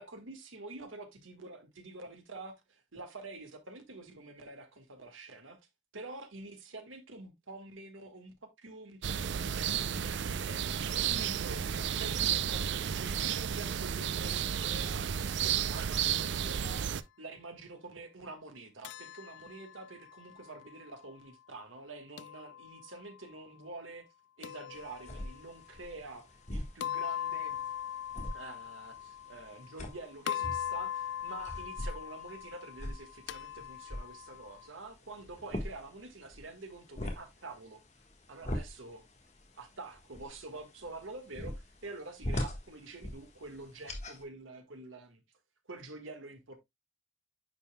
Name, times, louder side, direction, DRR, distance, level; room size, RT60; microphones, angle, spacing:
voice 1, 0.0-5.6 5.9-8.3 8.6-10.6 10.9-24.0 24.4-26.2 26.5-27.6 28.3-37.8 38.3-39.0 39.6-45.2 45.7-46.4, right 2 dB, 80° right, 1.6 m, -47 dB
sound 1, 9.0-17.0, right 8 dB, 60° right, 0.4 m, -32 dB
sound 2, 18.8-20.9 22.2-23.2 24.4-25.6 26.8-29.9 30.3-34.7, left 10 dB, 60° left, 0.3 m, -41 dB
sound 3, 24.7-44.2, left 1 dB, 35° left, 1.4 m, -43 dB
9.5 x 5.5 x 2.2 m
head